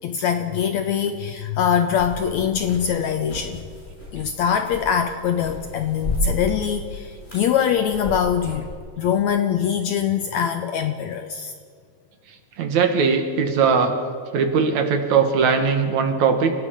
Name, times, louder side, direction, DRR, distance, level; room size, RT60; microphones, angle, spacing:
voice 1, 0.0-3.6 4.1-8.7 9.0-11.5, left 8 dB, 75° left, 8 dB, 1.8 m, -23 dB
sound 1, 1.9-8.7, left 1 dB, 15° left, 7.0 m, -33 dB
voice 2, 12.6-14.0 14.3-16.5, right 5 dB, 60° right, 6 dB, 2.5 m, -19 dB
30.0 x 17.5 x 5.2 m, 2.1 s
omnidirectional pair, 4.0 m